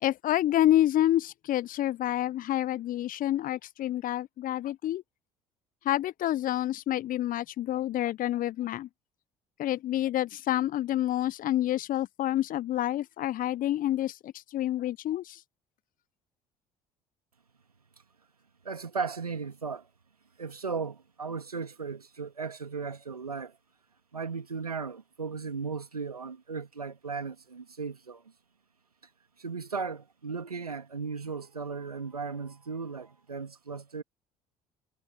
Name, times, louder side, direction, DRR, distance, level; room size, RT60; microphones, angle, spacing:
voice 1, 0.0-5.0 5.8-8.9 9.6-15.4, left 13 dB, 50° left, 0.9 m, -28 dB
voice 2, 18.6-19.9 20.4-23.5 24.1-28.2 29.4-34.0, right 5 dB, 90° right, 2.4 m, -36 dB
figure-of-eight pair, 55°, 19 cm